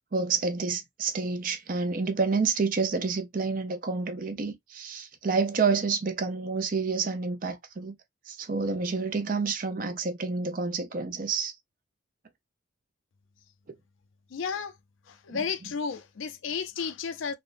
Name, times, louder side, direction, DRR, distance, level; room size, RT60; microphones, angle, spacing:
voice 1, 0.0-7.9 8.3-11.5 15.3-15.4, right 4 dB, 45° right, 0.5 m, -29 dB
voice 2, 14.3-14.7 15.1-17.3, left 6 dB, 80° left, 0.4 m, -33 dB
3.4 x 2.1 x 2.4 m
head